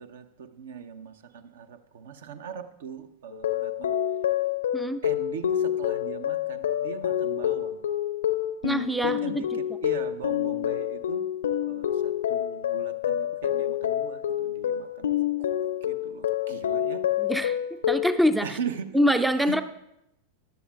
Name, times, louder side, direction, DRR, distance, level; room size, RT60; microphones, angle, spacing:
voice 1, 0.0-3.9 5.0-7.8 9.0-11.2 11.7-15.5 15.8-17.0 18.4-19.0 19.4-19.6, right 7 dB, 60° right, 13 dB, 0.6 m, -40 dB
sound 1, 3.3-18.2, left 11 dB, 65° left, 0.4 m, -27 dB
voice 2, 8.6-9.4 17.2-17.6 17.9-18.6 18.9-19.6, equal, 5° right, 11 dB, 0.4 m, -24 dB
15.0 x 10.5 x 2.3 m, 0.84 s
figure-of-eight pair, 90°, 0 cm